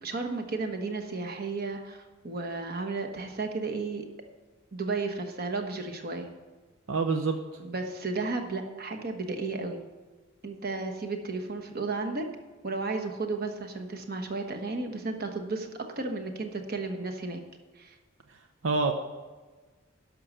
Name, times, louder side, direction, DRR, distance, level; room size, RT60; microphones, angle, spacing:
voice 1, 0.0-4.1 4.7-6.3 7.6-9.8 10.4-12.3 12.6-15.7 16.0-17.4 17.8-18.0, right 3 dB, 50° right, 4 dB, 1.2 m, -33 dB
voice 2, 6.9-7.4 18.6-18.9, right 4 dB, 75° right, 5 dB, 0.7 m, -26 dB
11.0 x 6.2 x 6.7 m, 1.3 s
head